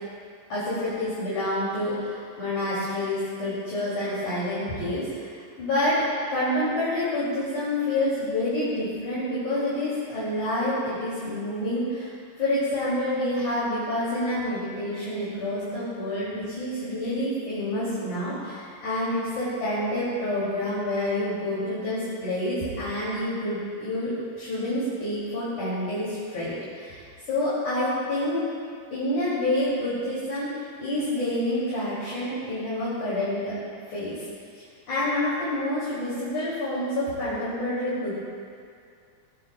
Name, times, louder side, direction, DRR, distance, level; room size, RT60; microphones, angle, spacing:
voice 1, 0.5-28.5 28.9-33.6 33.9-34.3 34.9-38.2, left 1 dB, 50° left, -11 dB, 4.3 m, -28 dB
19.5 x 16.0 x 2.4 m, 2.2 s
omnidirectional pair, 4.5 m